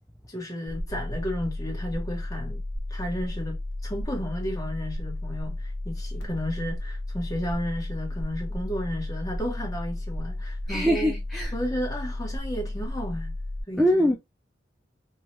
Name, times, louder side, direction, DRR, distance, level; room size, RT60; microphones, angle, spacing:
voice 1, 0.3-2.6 2.9-11.2 11.5-13.3 13.7-14.1, equal, 20° left, 1.0 m, -33 dB
sound 1, 0.7-13.6, left 1 dB, 65° left, 0.8 m, -33 dB
voice 2, 10.7-11.5 13.8-14.1, equal, ahead, 0.3 m, -22 dB
2.8 x 2.3 x 2.9 m
head